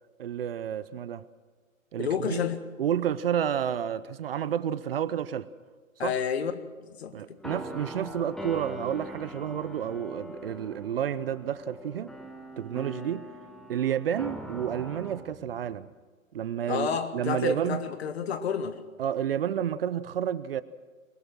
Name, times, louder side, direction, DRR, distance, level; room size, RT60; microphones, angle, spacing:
voice 1, 0.2-1.2 1.9-2.4 2.8-5.5 6.0-6.2 7.1-12.1 12.6-13.3 13.7-15.9 16.3-17.9 19.0-20.6, right 9 dB, 45° right, 0.8 m, -30 dB
voice 2, 2.0-2.6 6.0-6.5 6.8-7.4 16.7-18.8, left 7 dB, 50° left, 1.8 m, -30 dB
sound 1, 7.4-15.9, equal, ahead, 1.3 m, -42 dB
22.5 x 20.0 x 6.2 m
figure-of-eight pair, 125°, 41 cm